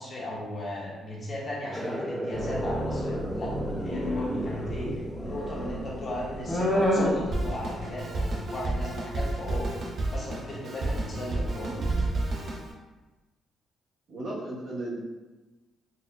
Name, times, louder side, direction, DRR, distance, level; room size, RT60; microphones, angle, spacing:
voice 1, 0.0-3.5 3.8-9.7 10.1-11.7, left 1 dB, 45° left, -5 dB, 1.0 m, -37 dB
sound 1, 1.7-7.9, equal, 5° right, 0.4 m, -37 dB
sound 2, 2.3-8.0, equal, 20° left, 0.7 m, -30 dB
Drum kit, 7.3-12.7, right 2 dB, 55° right, 0.6 m, -31 dB
voice 2, 11.6-11.9 14.1-15.0, right 2 dB, 70° right, -7 dB, 1.1 m, -36 dB
4.1 x 2.1 x 2.3 m, 1.2 s
cardioid pair, 90°, 0 cm